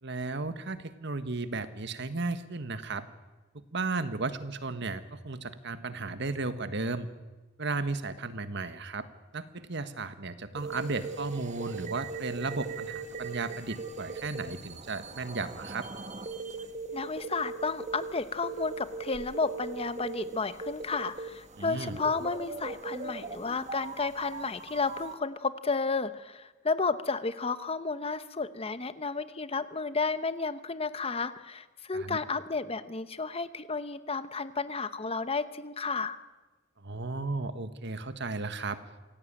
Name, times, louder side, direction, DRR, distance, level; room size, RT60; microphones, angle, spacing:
voice 1, 0.0-3.0 3.5-7.1 7.6-9.1 9.3-15.9 21.6-22.0 31.9-32.2 36.8-38.8, right 3 dB, 60° right, 11 dB, 1.5 m, -34 dB
sound 1, 10.6-25.1, right 4 dB, 35° right, 1.5 m, -40 dB
voice 2, 16.9-36.2, left 4 dB, 30° left, 13 dB, 0.9 m, -32 dB
26.0 x 17.0 x 8.9 m, 1.2 s
head